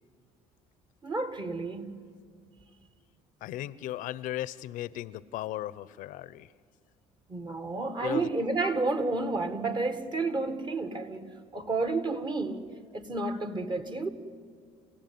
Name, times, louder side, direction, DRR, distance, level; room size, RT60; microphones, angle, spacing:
voice 1, 1.0-1.9 7.3-14.1, right 3 dB, 30° right, 1.9 m, -31 dB
voice 2, 3.4-6.5 8.0-8.3, left 14 dB, 70° left, 0.8 m, -36 dB
28.5 x 16.5 x 9.4 m
supercardioid pair, 85°, 14 cm